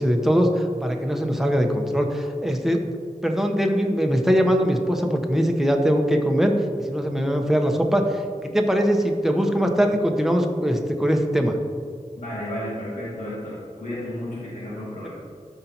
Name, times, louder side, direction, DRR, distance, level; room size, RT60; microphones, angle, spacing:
voice 1, 0.0-2.8 3.2-11.6, equal, 5° right, 2 dB, 0.9 m, -21 dB
voice 2, 12.2-15.1, left 1 dB, 90° left, -9 dB, 2.2 m, -32 dB
13.0 x 5.6 x 2.9 m, 2.2 s
wide cardioid pair, 65°, 13 cm